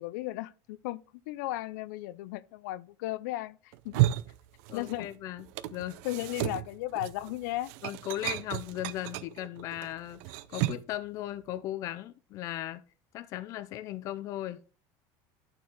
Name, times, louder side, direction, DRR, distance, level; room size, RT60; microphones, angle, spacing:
voice 1, 0.0-4.0 4.7-5.1 6.0-7.7, left 16 dB, 85° left, 0.4 m, -35 dB
sound 1, 3.7-5.1 5.4-11.0, right 15 dB, 65° right, 0.5 m, -33 dB
voice 2, 4.7-6.0 7.8-10.2 10.5-12.8 13.1-14.6, left 13 dB, 35° left, 0.5 m, -37 dB
11.5 x 4.5 x 3.8 m
cardioid pair, 180°, 9 cm